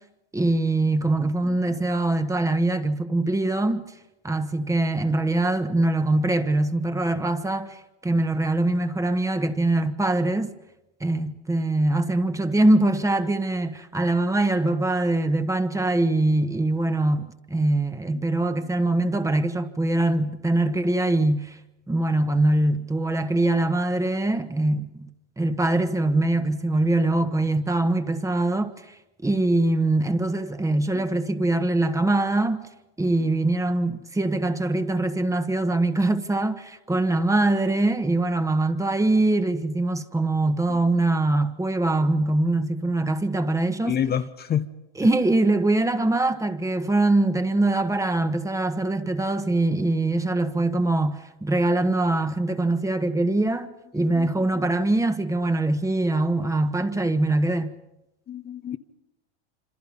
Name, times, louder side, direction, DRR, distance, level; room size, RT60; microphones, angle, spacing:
voice 1, 0.3-3.8 4.2-10.5 11.0-21.6 21.9-25.1 25.4-29.0 29.2-32.6 33.0-44.0 44.9-57.7, right 2 dB, 10° right, 1.4 m, -23 dB
voice 2, 43.8-44.7 54.1-54.3 58.3-58.8, left 9 dB, 30° left, 1.0 m, -27 dB
27.0 x 26.0 x 5.4 m
hypercardioid pair, 105°, 33 cm